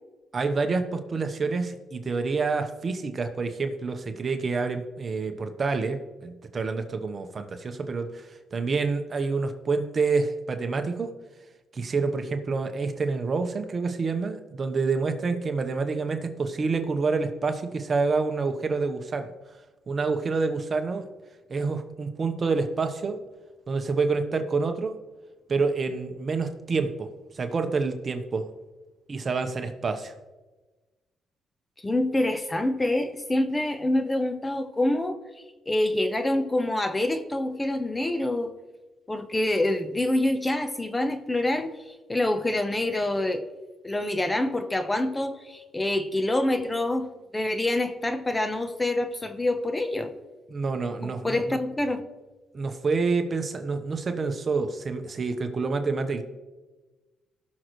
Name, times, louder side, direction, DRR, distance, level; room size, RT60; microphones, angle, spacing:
voice 1, 0.3-11.1 11.7-19.3 19.9-21.1 21.5-23.2 23.7-25.0 25.5-27.1 27.3-28.5 29.1-30.1 50.5-51.6 52.5-56.2, right 4 dB, 40° right, 7 dB, 1.1 m, -28 dB
voice 2, 31.8-35.2 35.7-38.5 39.1-41.7 42.1-43.5 43.8-50.1 51.0-52.0, left 1 dB, 15° left, 9 dB, 0.9 m, -26 dB
18.0 x 6.5 x 3.2 m, 1.2 s
cardioid pair, 90°, 0 cm